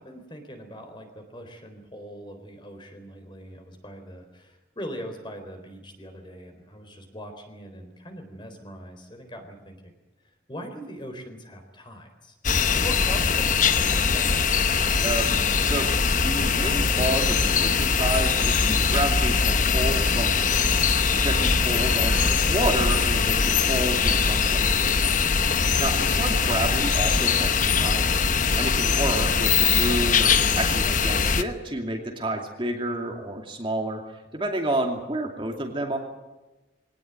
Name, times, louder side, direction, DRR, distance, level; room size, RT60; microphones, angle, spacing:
voice 1, 0.0-9.9 10.2-14.4 25.6-25.9, equal, 25° left, 6 dB, 4.0 m, -41 dB
sound 1, 12.4-31.4, left 5 dB, 40° left, 1.0 m, -22 dB
voice 2, 16.2-20.7 20.9-24.6 25.8-36.0, right 1 dB, 25° right, 2 dB, 2.6 m, -30 dB
23.0 x 18.5 x 9.1 m, 1.1 s
head